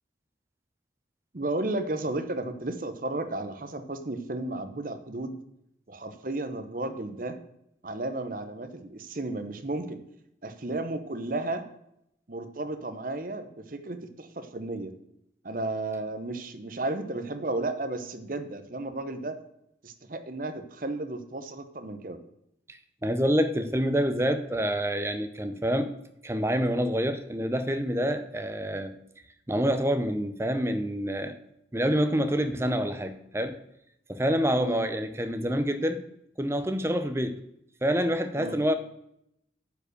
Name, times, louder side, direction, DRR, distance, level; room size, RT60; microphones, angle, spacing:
voice 1, 1.3-5.4 5.9-7.4 7.8-10.0 10.4-11.7 12.3-14.9 15.4-19.4 19.8-22.2 34.5-34.8 38.4-38.6, right 2 dB, 45° right, 9 dB, 0.8 m, -33 dB
voice 2, 22.7-25.9 26.2-28.9 29.5-31.4 31.7-33.6 34.1-36.0 36.4-37.4 37.8-38.7, equal, 15° right, 9 dB, 0.6 m, -27 dB
9.4 x 5.0 x 6.6 m, 0.77 s
head